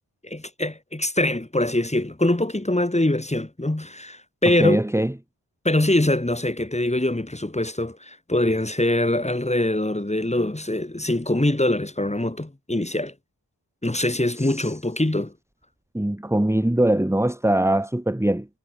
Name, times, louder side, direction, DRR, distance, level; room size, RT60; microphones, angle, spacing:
voice 1, 0.2-4.8 5.6-13.1 13.8-15.3, left 1 dB, 15° left, 2.9 m, -23 dB
voice 2, 4.6-5.1 14.4-14.7 15.9-18.5, right 1 dB, 5° right, 1.5 m, -22 dB
wide cardioid pair, 80°, 43 cm